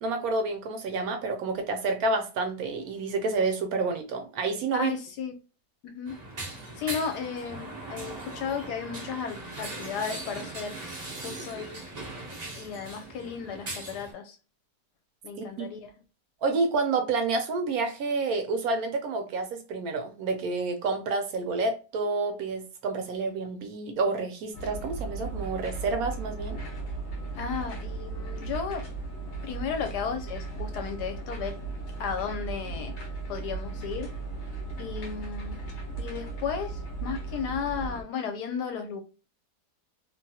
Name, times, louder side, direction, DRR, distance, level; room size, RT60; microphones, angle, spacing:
voice 1, 0.0-4.9 15.6-15.7 16.4-26.6, right 3 dB, 70° right, 1.0 m, -29 dB
voice 2, 4.7-5.3 5.8-6.2 6.8-10.8 11.2-11.8 12.5-14.4 15.2-15.9 27.4-28.9 29.4-31.6 32.0-33.0 33.3-34.1 34.8-35.6 36.0-39.0, left 6 dB, 75° left, 1.2 m, -34 dB
sound 1, 6.1-14.1, right 2 dB, 45° right, 0.5 m, -39 dB
sound 2, 24.5-38.0, right 3 dB, 50° left, 1.0 m, -36 dB
2.8 x 2.7 x 2.3 m
omnidirectional pair, 1.8 m